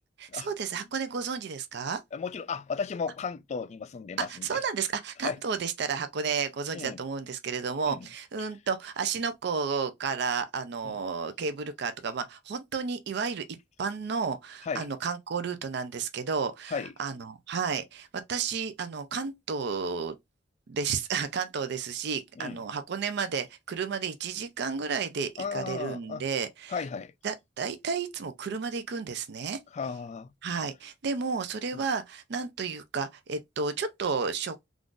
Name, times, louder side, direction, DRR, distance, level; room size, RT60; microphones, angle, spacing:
voice 1, 0.2-2.0 4.2-20.2 20.7-26.8 27.2-29.6 30.4-34.6, right 5 dB, 65° right, 0.4 m, -32 dB
voice 2, 2.1-4.6 5.2-5.4 6.7-7.0 7.9-8.1 10.8-11.0 14.6-14.9 16.7-16.9 22.4-22.6 25.4-26.2 26.7-27.1 29.7-30.3, left 5 dB, 40° left, 0.3 m, -34 dB
3.6 x 2.4 x 2.4 m
head